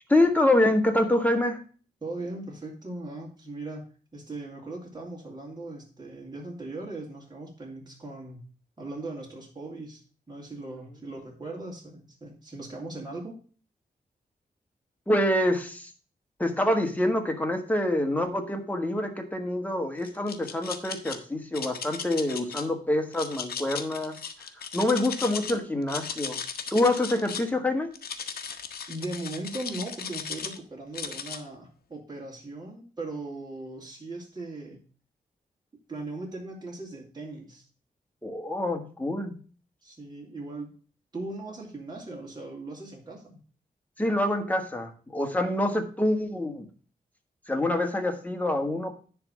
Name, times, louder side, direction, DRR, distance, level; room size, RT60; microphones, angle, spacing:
voice 1, 0.1-1.6 15.1-15.9 16.4-24.2 24.7-26.4 26.7-27.9 38.2-39.3 44.0-46.6 47.5-48.9, left 1 dB, 10° left, 4 dB, 1.6 m, -26 dB
voice 2, 2.0-3.9 4.1-8.4 8.8-13.3 28.9-34.8 35.9-37.6 39.8-40.7 41.1-43.4, right 2 dB, 25° right, -3 dB, 2.9 m, -39 dB
sound 1, 20.0-21.2 21.5-22.6 23.1-25.5 25.8-27.5 27.9-30.6 30.9-31.4, left 7 dB, 90° left, 1.0 m, -36 dB
10.5 x 3.6 x 7.3 m, 0.40 s
cardioid pair, 90°, 15 cm